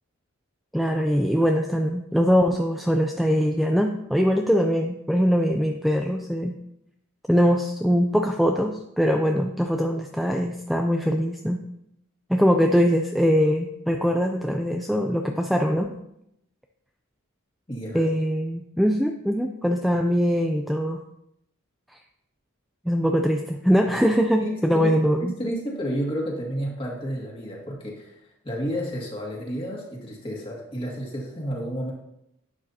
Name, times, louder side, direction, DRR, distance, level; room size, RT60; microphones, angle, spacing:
voice 1, 0.7-6.5 7.3-11.6 12.3-15.9 17.9-21.0 22.9-25.3, equal, ahead, 2 dB, 0.4 m, -22 dB
voice 2, 17.7-18.0 24.4-24.9 25.2-31.9, equal, 25° left, -2 dB, 2.2 m, -31 dB
11.5 x 8.7 x 2.8 m, 0.79 s
head